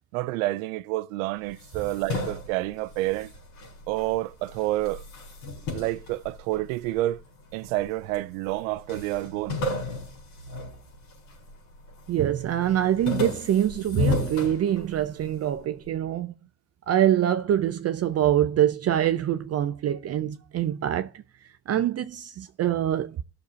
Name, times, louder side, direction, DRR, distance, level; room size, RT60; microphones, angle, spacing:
voice 1, 0.1-3.3 3.9-5.0 5.7-7.2 7.5-9.6, right 17 dB, 85° right, 0.5 m, -29 dB
sound 1, 1.5-4.1 4.5-7.0 7.6-8.3 8.5-8.6 8.9-11.5 11.9-12.3 12.6-15.2, left 3 dB, 85° left, 4.6 m, -33 dB
voice 2, 12.1-16.3 16.9-21.2 21.7-23.2, right 11 dB, 40° right, 0.6 m, -25 dB
19.0 x 6.6 x 2.7 m
supercardioid pair, 75°, 39 cm